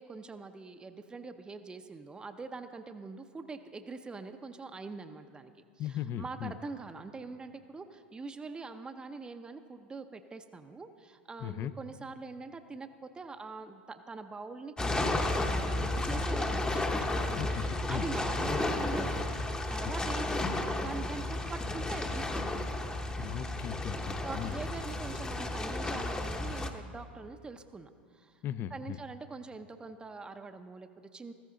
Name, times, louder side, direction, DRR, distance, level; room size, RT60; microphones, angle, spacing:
voice 1, 0.0-19.4 19.7-22.7 24.2-28.4 28.7-31.3, right 4 dB, 15° right, 7 dB, 0.6 m, -44 dB
voice 2, 5.8-6.6 11.4-11.7 17.4-18.1 19.9-20.0 23.2-24.6 28.4-29.0, left 11 dB, 40° left, 15 dB, 0.5 m, -38 dB
sound 1, 14.8-26.7, left 2 dB, 15° left, 0.9 m, -32 dB
14.5 x 14.0 x 3.8 m, 2.1 s
hypercardioid pair, 90°, 6 cm